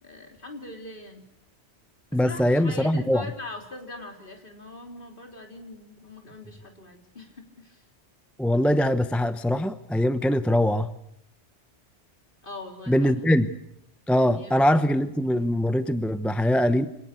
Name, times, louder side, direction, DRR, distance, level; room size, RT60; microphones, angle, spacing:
voice 1, 0.0-1.3 2.1-7.8 12.4-13.1 14.3-14.7, left 2 dB, 45° left, 4 dB, 3.7 m, -42 dB
voice 2, 2.1-3.2 8.4-10.9 12.9-13.5 14.1-16.9, equal, ahead, 11 dB, 0.7 m, -22 dB
26.0 x 18.5 x 8.3 m, 0.79 s
omnidirectional pair, 1.2 m